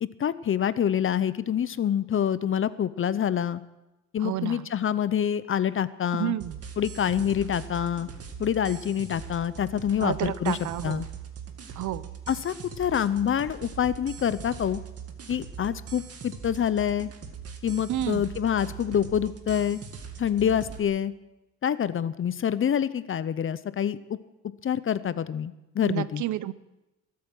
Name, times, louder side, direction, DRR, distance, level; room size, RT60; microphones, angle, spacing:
voice 1, 0.0-3.6 4.1-6.3 6.8-8.1 8.4-10.6 10.8-11.1 12.3-14.8 15.3-17.1 17.6-19.8 20.2-21.1 21.6-24.2 24.6-26.2, left 9 dB, 45° left, 16 dB, 0.7 m, -26 dB
voice 2, 4.2-4.7 6.2-6.6 10.0-11.1 11.8-12.1 17.9-18.2 25.8-26.5, right 13 dB, 75° right, 17 dB, 0.7 m, -30 dB
sound 1, 6.4-20.8, right 7 dB, 50° right, 2.1 m, -41 dB
23.0 x 8.6 x 6.2 m, 0.99 s
cardioid pair, 90°, 30 cm